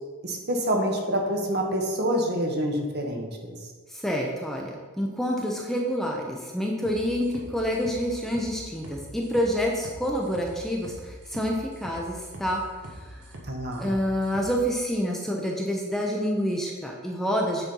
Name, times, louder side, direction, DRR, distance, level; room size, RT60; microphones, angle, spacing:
voice 1, 0.2-3.5 13.4-13.9, equal, 50° right, 1 dB, 1.2 m, -27 dB
voice 2, 3.9-12.6 12.9-13.2 13.8-17.7, equal, ahead, -1 dB, 0.7 m, -28 dB
sound 1, 6.8-14.6, right 1 dB, 90° right, 1.4 m, -43 dB
8.4 x 4.3 x 5.3 m, 1.4 s
head